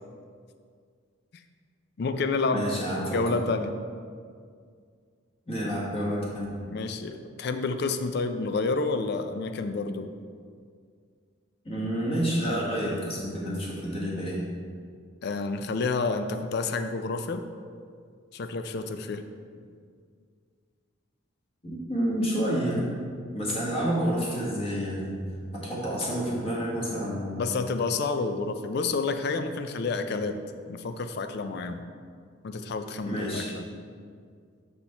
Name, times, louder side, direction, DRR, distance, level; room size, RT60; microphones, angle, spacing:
voice 1, 2.0-2.9 3.1-3.8 6.7-10.1 15.2-17.4 18.3-19.2 27.4-30.4 30.7-31.8 32.4-33.7, left 3 dB, 55° left, 8 dB, 0.4 m, -29 dB
voice 2, 2.5-3.4 5.5-6.5 11.6-14.4 21.6-22.9 23.3-25.2 25.5-27.5 29.9-30.2 33.0-33.5, equal, 30° left, -5 dB, 1.5 m, -29 dB
6.8 x 4.4 x 4.3 m, 2.1 s
head